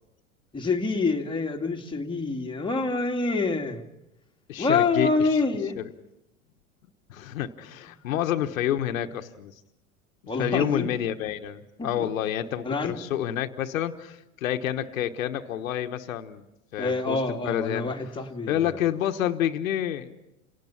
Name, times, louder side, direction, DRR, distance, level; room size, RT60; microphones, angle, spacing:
voice 1, 0.5-3.8 4.6-5.8 10.3-10.9 11.8-12.1 12.6-13.0 16.8-18.8, left 3 dB, 10° left, 1 dB, 2.2 m, -26 dB
voice 2, 4.5-5.1 5.8-5.9 7.1-9.5 10.4-16.4 16.7-17.9 18.5-20.1, left 11 dB, 75° left, 7 dB, 1.3 m, -28 dB
28.5 x 18.0 x 5.8 m, 0.88 s
hypercardioid pair, 90°, 40 cm